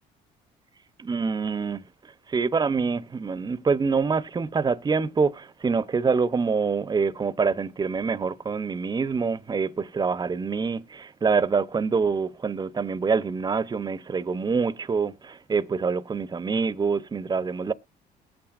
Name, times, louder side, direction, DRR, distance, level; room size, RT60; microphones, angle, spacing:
voice 1, 1.0-17.7, right 5 dB, 25° right, 0.7 m, -26 dB
20.0 x 8.8 x 2.5 m
cardioid pair, 90°, 17 cm